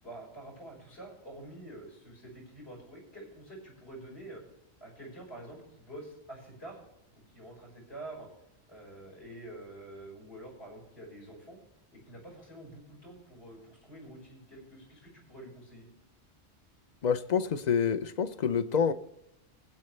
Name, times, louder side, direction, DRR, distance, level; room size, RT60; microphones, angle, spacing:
voice 1, 0.0-4.4 4.8-6.8 7.1-8.3 8.7-11.6 11.9-15.9, right 1 dB, 70° left, -2 dB, 6.1 m, -47 dB
voice 2, 17.0-18.9, left 7 dB, 45° left, 12 dB, 0.8 m, -27 dB
22.5 x 8.5 x 3.3 m, 0.86 s
omnidirectional pair, 1.1 m